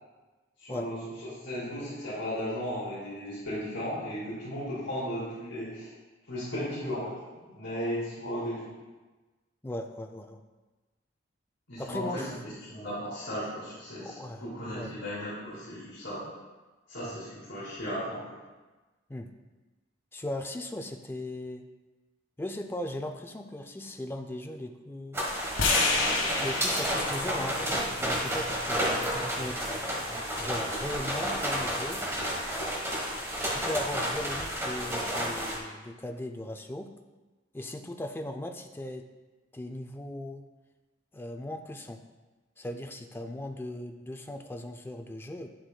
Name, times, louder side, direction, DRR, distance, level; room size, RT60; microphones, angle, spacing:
voice 1, 0.6-1.0 1.4-5.9 6.3-7.2 7.4-8.8 11.7-12.2 12.7-16.3 16.9-18.4 29.1-29.2, equal, 65° left, -10 dB, 2.5 m, -35 dB
voice 2, 9.6-10.4 11.8-12.6 14.0-14.9 17.0-17.1 19.1-19.3 20.1-21.7 22.4-25.2 26.4-28.8 29.4-29.5 30.1-32.0 33.5-36.9 37.5-39.1 39.5-40.4 41.1-42.0 42.6-45.5, left 1 dB, 10° left, 5 dB, 0.4 m, -38 dB
sound 1, 25.1-35.6, equal, 15° right, 1.2 m, -31 dB
sound 2, 25.5-29.7, left 3 dB, 80° left, 1.4 m, -31 dB
8.8 x 7.7 x 2.3 m, 1.2 s
head